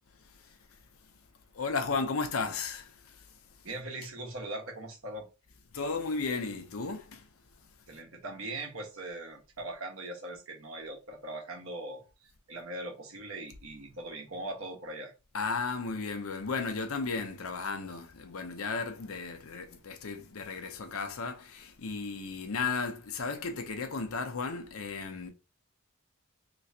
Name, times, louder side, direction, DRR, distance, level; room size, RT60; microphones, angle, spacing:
voice 1, 0.1-1.2 1.5-3.7 5.7-7.3 7.6-7.7 15.3-25.3, left 4 dB, 85° left, 0.7 m, -35 dB
voice 2, 3.6-5.3 7.9-15.1, right 2 dB, 75° right, 1.2 m, -40 dB
3.3 x 3.0 x 2.7 m
head